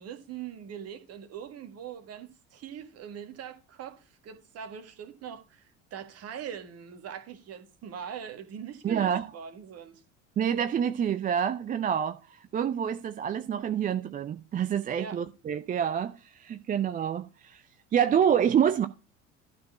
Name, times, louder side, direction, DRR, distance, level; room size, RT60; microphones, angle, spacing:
voice 1, 0.0-10.0 15.0-15.2, right 8 dB, 40° right, 1.7 m, -42 dB
voice 2, 8.8-9.3 10.4-17.6 17.9-18.9, right 8 dB, 20° right, 0.5 m, -27 dB
12.0 x 4.4 x 6.0 m
figure-of-eight pair, 70°, 38 cm